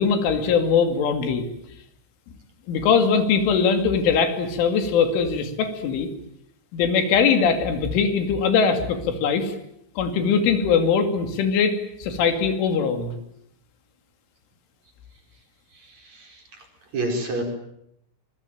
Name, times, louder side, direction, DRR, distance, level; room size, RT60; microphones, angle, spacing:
voice 1, 0.0-1.5 2.7-6.1 6.7-9.5 10.0-13.1, left 6 dB, 90° left, 8 dB, 5.2 m, -21 dB
voice 2, 15.8-16.4 16.9-17.4, right 2 dB, 40° right, 3 dB, 5.9 m, -28 dB
26.0 x 22.5 x 9.2 m, 0.76 s
omnidirectional pair, 5.4 m